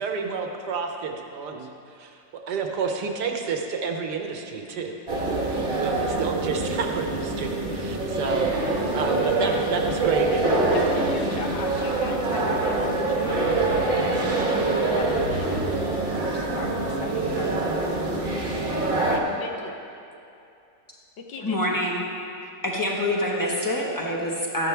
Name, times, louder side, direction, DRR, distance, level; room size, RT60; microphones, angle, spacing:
voice 1, 0.0-1.7 2.0-2.1 2.5-5.0 5.2-8.5 8.9-10.5 15.6-15.7, right 5 dB, 70° right, 3 dB, 1.4 m, -30 dB
sound 1, 5.1-19.2, right 2 dB, 35° right, 1.2 m, -25 dB
voice 2, 9.2-9.7 10.7-14.2 14.7-15.6 16.1-18.1 18.9-19.8 21.3-21.8, left 4 dB, 80° left, 2 dB, 1.7 m, -39 dB
voice 3, 21.4-22.0 22.6-24.7, left 1 dB, 15° left, -3 dB, 1.1 m, -26 dB
13.5 x 11.0 x 3.4 m, 2.6 s
omnidirectional pair, 1.9 m